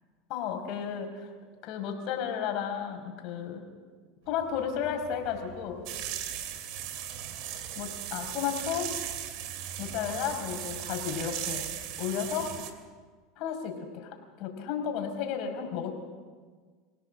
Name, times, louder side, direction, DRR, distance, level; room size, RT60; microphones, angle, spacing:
voice 1, 0.3-1.3 1.6-3.6 4.3-5.8 7.8-8.9 9.8-11.7 12.0-12.5 13.4-15.9, left 8 dB, 60° left, 4 dB, 5.1 m, -33 dB
sound 1, 4.2-12.6, right 4 dB, 80° right, 6.8 m, -51 dB
sound 2, 5.9-12.7, right 11 dB, 60° right, 2.6 m, -37 dB
26.5 x 16.5 x 7.6 m, 1.5 s
supercardioid pair, 120°, 0 cm